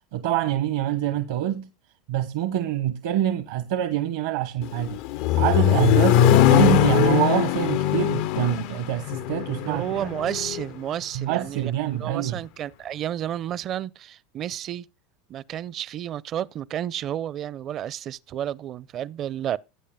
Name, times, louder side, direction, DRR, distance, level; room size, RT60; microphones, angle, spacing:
voice 1, 0.1-1.7 2.1-5.0 5.4-10.1 11.1-12.4, right 12 dB, 70° right, 0.9 m, -25 dB
Accelerating revving vroom, 4.6-10.6, left 13 dB, 65° left, 0.5 m, -21 dB
voice 2, 9.7-14.9 15.3-19.6, right 11 dB, 40° right, 0.5 m, -31 dB
17.5 x 8.6 x 2.2 m
hypercardioid pair, 100°, 0 cm